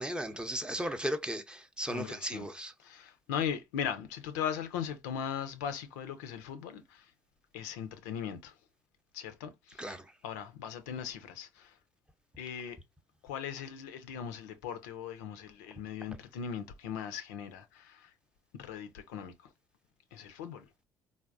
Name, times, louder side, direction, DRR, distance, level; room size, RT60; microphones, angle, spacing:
voice 1, 0.0-2.7 9.8-10.0, equal, 10° right, 0.6 m, -36 dB
voice 2, 1.8-2.5 2.8-7.1 7.5-8.6 9.1-11.8 12.4-12.8 13.2-18.1 18.5-19.5 20.1-20.7, left 8 dB, 80° left, 0.4 m, -39 dB
3.4 x 2.1 x 2.4 m
hypercardioid pair, 50°, 9 cm